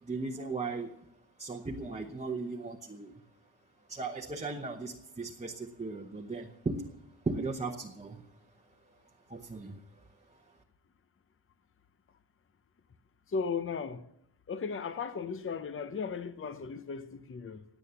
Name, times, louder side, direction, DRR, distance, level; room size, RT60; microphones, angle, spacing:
voice 1, 0.0-0.9 1.4-3.1 3.9-6.9 7.2-8.2 9.3-9.8, right 3 dB, 15° right, 0.9 m, -37 dB
voice 2, 13.3-14.1 14.5-17.7, left 5 dB, 30° left, 0.7 m, -36 dB
17.5 x 9.2 x 7.0 m
wide cardioid pair, 165°, 42 cm